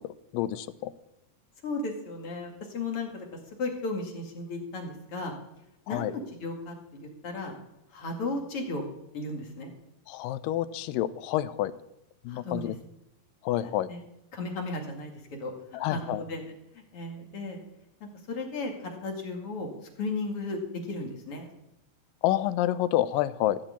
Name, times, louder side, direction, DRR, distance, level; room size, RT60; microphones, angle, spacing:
voice 1, 0.3-0.9 5.9-6.1 10.1-11.7 12.3-12.7 13.5-13.9 15.8-16.2 22.2-23.6, left 13 dB, 80° left, 15 dB, 2.2 m, -28 dB
voice 2, 1.6-3.3 3.6-5.3 5.9-7.5 7.9-8.8 9.1-9.7 12.3-12.7 13.6-14.0 14.3-15.5 15.9-17.6 18.0-19.7 20.0-20.6 20.9-21.5, left 2 dB, 45° left, 2 dB, 2.5 m, -35 dB
14.5 x 5.2 x 8.5 m, 0.88 s
omnidirectional pair, 4.0 m